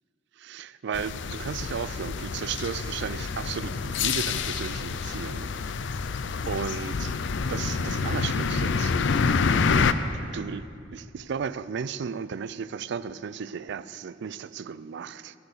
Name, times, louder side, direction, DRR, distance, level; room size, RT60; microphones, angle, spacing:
voice 1, 0.4-5.5 6.5-7.2 7.5-8.9 9.8-9.9 10.3-15.3, right 6 dB, 65° right, 15 dB, 0.4 m, -34 dB
sound 1, 0.9-9.9, left 5 dB, 70° left, 0.5 m, -27 dB
16.5 x 7.0 x 6.7 m, 2.5 s
head